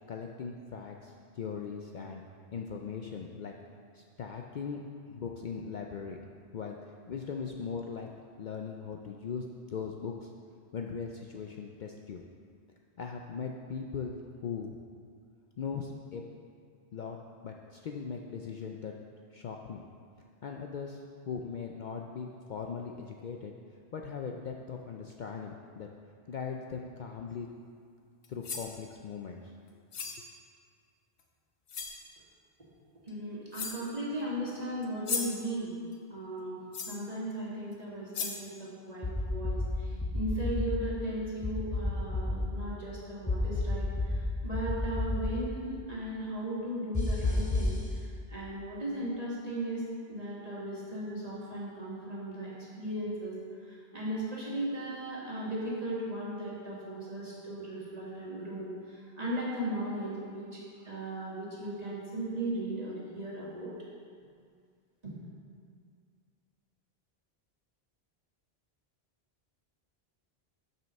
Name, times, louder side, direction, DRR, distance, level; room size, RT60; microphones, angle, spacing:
voice 1, 0.1-2.2 2.5-3.5 3.9-4.8 5.1-6.2 6.5-6.8 7.1-8.1 8.4-10.3 10.7-12.2 13.0-14.7 15.6-16.2 16.9-18.9 19.3-19.8 20.4-23.5 23.9-25.9 26.3-27.5 28.3-29.5, left 6 dB, 55° left, 1 dB, 0.6 m, -39 dB
sound 1, 28.2-28.7 29.9-30.3 31.2-31.3 31.7-32.0 33.1-33.2 33.5-33.9 34.8-35.5 36.7-37.1 37.7-37.8 38.1-38.5, left 5 dB, 85° left, 1.1 m, -36 dB
voice 2, 33.0-35.8 36.1-49.8 50.1-53.4 53.7-63.7 65.0-65.1, right 1 dB, 40° right, -6 dB, 2.0 m, -37 dB
sound 2, 39.0-39.7 40.0-40.7 41.4-42.4 43.3-44.2 44.5-45.2 46.9-47.7, left 2 dB, 15° left, 0.9 m, -30 dB
7.5 x 5.6 x 6.4 m, 2.2 s
omnidirectional pair, 1.1 m